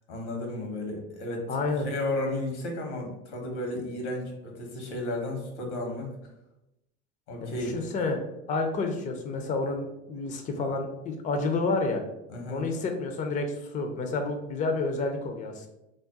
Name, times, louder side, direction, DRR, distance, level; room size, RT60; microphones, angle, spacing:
voice 1, 0.1-1.6 1.8-6.1 7.3-7.9 12.3-12.6, left 1 dB, 85° left, 1 dB, 1.0 m, -33 dB
voice 2, 1.5-1.9 7.4-8.2 8.5-12.0 12.5-15.7, left 3 dB, 25° left, 4 dB, 0.4 m, -29 dB
2.4 x 2.0 x 3.9 m, 0.91 s
hypercardioid pair, 90°, 33 cm